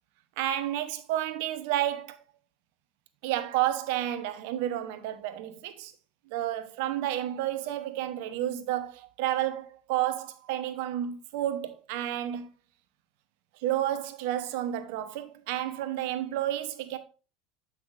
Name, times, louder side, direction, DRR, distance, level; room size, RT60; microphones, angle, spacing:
voice 1, 0.4-2.2 3.2-5.9 6.3-12.5 13.6-17.0, right 12 dB, 70° right, 0.9 m, -31 dB
7.8 x 5.8 x 2.6 m
hypercardioid pair, 80°, 0 cm